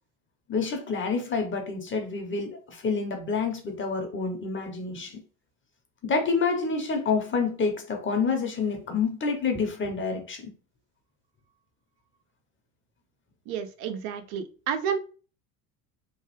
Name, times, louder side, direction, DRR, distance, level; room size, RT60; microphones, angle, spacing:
voice 1, 0.5-5.2 6.0-10.5, left 4 dB, 25° left, 5 dB, 0.9 m, -28 dB
voice 2, 13.5-15.0, right 7 dB, 60° right, 7 dB, 0.7 m, -30 dB
3.1 x 2.2 x 3.2 m, 0.37 s
hypercardioid pair, 85°, 44 cm